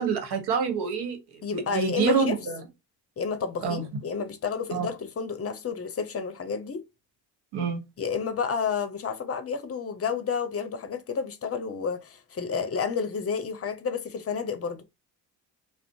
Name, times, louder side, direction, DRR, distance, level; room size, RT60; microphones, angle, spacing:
voice 1, 0.0-2.6 3.6-3.8 4.7-4.9 7.5-7.8, right 6 dB, 70° right, 1.0 m, -27 dB
voice 2, 1.4-2.4 3.2-6.8 8.0-14.8, left 6 dB, 35° left, 0.7 m, -30 dB
2.5 x 2.0 x 2.6 m
supercardioid pair, 70°, 41 cm